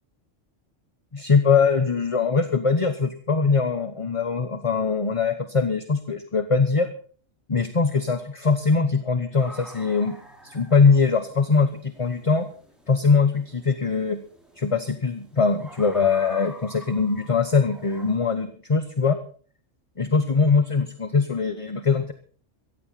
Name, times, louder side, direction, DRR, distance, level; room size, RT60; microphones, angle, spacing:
voice 1, 1.1-6.9 7.5-10.2 10.4-12.5 12.9-14.2 14.6-19.2 20.0-22.1, left 5 dB, 30° left, 9 dB, 1.0 m, -22 dB
sound 1, 9.4-18.2, equal, ahead, 5.1 m, -47 dB
16.5 x 15.0 x 4.1 m, 0.44 s
omnidirectional pair, 1.3 m